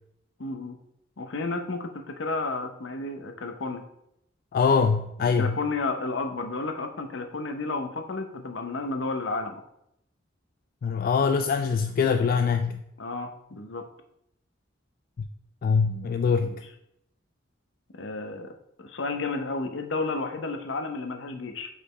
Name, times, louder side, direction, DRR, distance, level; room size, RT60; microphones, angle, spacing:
voice 1, 0.4-0.8 1.2-3.9 5.2-9.6 13.0-13.9 16.4-16.5 17.9-18.5 18.8-21.7, left 3 dB, 70° left, 6 dB, 0.7 m, -32 dB
voice 2, 4.5-5.6 10.8-12.8 15.2-15.3 15.6-16.6, left 5 dB, 50° left, 7 dB, 0.3 m, -23 dB
6.6 x 4.9 x 3.2 m, 0.79 s
head